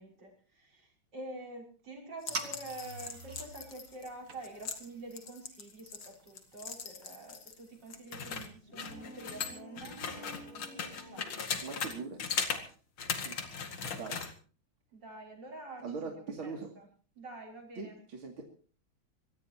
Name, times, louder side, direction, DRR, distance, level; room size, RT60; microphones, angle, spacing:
voice 1, 0.0-11.6 12.4-12.7 14.9-16.9 17.2-18.0, right 2 dB, 55° right, 1 dB, 6.3 m, -47 dB
sound 1, 2.2-7.6 7.9-11.9 12.2-12.6 13.0-14.3, left 6 dB, 75° left, 2.9 m, -38 dB
sound 2, 2.3-8.0, right 3 dB, 40° right, 2.2 m, -47 dB
sound 3, 8.6-11.6, right 1 dB, 30° left, 5.8 m, -51 dB
voice 2, 11.6-12.2 13.2-13.4 14.0-14.2 15.8-16.7 17.8-18.4, right 4 dB, 75° right, 1 dB, 3.4 m, -40 dB
25.0 x 18.5 x 2.9 m, 0.41 s
omnidirectional pair, 2.3 m